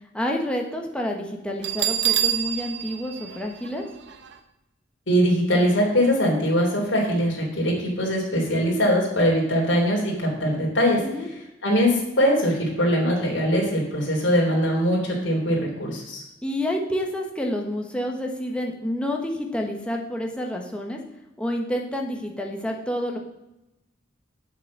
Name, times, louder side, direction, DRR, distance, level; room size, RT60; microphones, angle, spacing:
voice 1, 0.1-3.8 11.0-11.3 16.4-21.0 21.4-23.2, left 1 dB, 5° left, 1 dB, 1.4 m, -28 dB
Bell, 1.6-4.3, right 11 dB, 65° right, 0.9 m, -26 dB
voice 2, 5.1-11.0 11.6-16.2, equal, 75° left, -2 dB, 3.3 m, -22 dB
7.9 x 7.1 x 6.1 m, 0.89 s
head